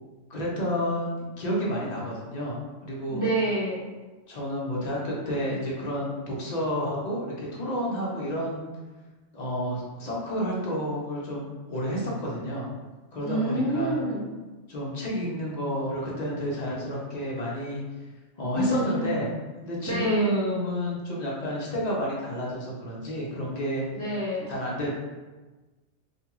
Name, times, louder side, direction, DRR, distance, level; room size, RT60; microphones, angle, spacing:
voice 1, 0.3-3.2 4.3-8.7 9.3-12.7 13.1-14.0 14.7-17.8 18.4-19.3 19.6-23.8 24.5-24.9, equal, 50° left, -4 dB, 0.5 m, -30 dB
voice 2, 3.1-3.8 13.2-14.3 18.5-19.1 19.9-20.4 24.0-24.5, right 1 dB, 15° left, -10 dB, 1.1 m, -27 dB
2.5 x 2.3 x 2.9 m, 1.2 s
omnidirectional pair, 1.3 m